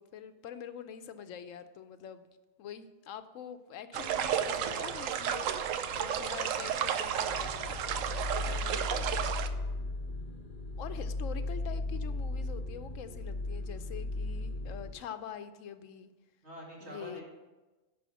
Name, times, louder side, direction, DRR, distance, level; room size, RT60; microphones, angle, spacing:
voice 1, 0.0-2.3 2.6-8.1 8.4-8.9 10.8-16.1 16.8-17.2, left 8 dB, 80° left, 11 dB, 1.0 m, -45 dB
sound 1, 3.9-9.5, right 8 dB, 85° right, 1.0 m, -32 dB
voice 2, 4.1-4.4 8.3-9.3 16.4-17.2, right 1 dB, 55° right, -3 dB, 2.7 m, -48 dB
sound 2, 7.3-14.9, left 2 dB, 45° left, 1.0 m, -36 dB
10.5 x 4.9 x 7.0 m, 1.2 s
omnidirectional pair, 1.3 m